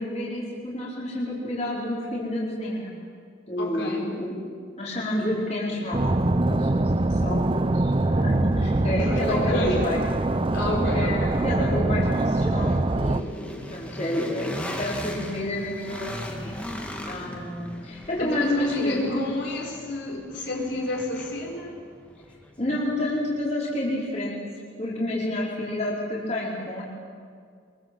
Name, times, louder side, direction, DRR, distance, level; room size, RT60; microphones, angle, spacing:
voice 1, 0.0-2.9 3.5-4.3 4.8-10.0 10.9-16.8 17.0-19.2 22.6-24.4 24.8-26.8, left 1 dB, 35° left, -5 dB, 4.5 m, -29 dB
voice 2, 3.6-4.1 8.9-9.9 10.5-11.8 18.2-21.8, left 1 dB, 60° left, -1 dB, 4.9 m, -30 dB
sound 1, 5.9-13.2, right 2 dB, 25° right, 0.5 m, -23 dB
sound 2, 7.0-7.1 7.6-23.5, equal, 5° left, 2.0 m, -40 dB
24.5 x 23.0 x 7.7 m, 2.2 s
head